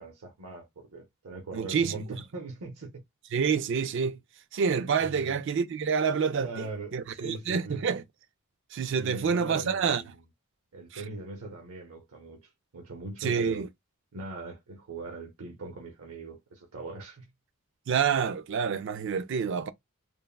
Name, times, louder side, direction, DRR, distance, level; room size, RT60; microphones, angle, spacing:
voice 1, 0.0-2.9 5.0-5.4 6.4-7.8 8.9-10.1 10.7-13.7 14.1-17.3, right 3 dB, 80° right, 0.7 m, -41 dB
voice 2, 1.5-2.0 3.3-4.2 4.5-8.0 8.7-10.0 10.9-11.0 13.2-13.7 17.9-19.7, right 6 dB, 55° right, 0.3 m, -28 dB
3.3 x 2.0 x 2.3 m
head